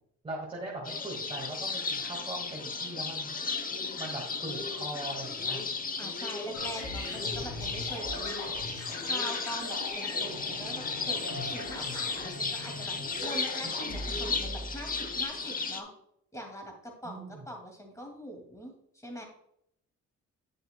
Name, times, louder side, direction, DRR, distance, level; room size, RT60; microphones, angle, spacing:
voice 1, 0.2-3.4 4.0-5.6 17.0-17.4, right 2 dB, 20° right, -4 dB, 1.9 m, -40 dB
sound 1, 0.8-15.8, left 4 dB, 30° left, 0.9 m, -35 dB
voice 2, 6.0-8.5 9.0-15.9 16.3-19.2, equal, 10° left, 2 dB, 2.3 m, -43 dB
sound 2, 6.5-15.3, left 1 dB, 85° left, 3.0 m, -40 dB
9.2 x 6.5 x 2.2 m, 0.74 s
cardioid pair, 90°, 30 cm